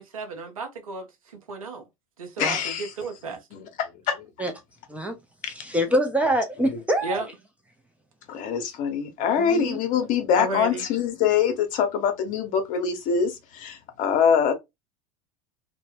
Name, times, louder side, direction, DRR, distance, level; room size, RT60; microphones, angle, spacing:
voice 1, 0.0-1.9 2.2-3.5 7.0-7.3 10.4-10.8, right 2 dB, 85° right, 0.5 m, -33 dB
voice 2, 2.4-2.9 3.5-4.3 5.4-5.5 8.3-14.5, left 7 dB, 50° left, 0.8 m, -24 dB
voice 3, 5.5-7.2 9.4-9.8, equal, 10° right, 0.5 m, -25 dB
2.1 x 2.1 x 3.2 m
hypercardioid pair, 80°, 17 cm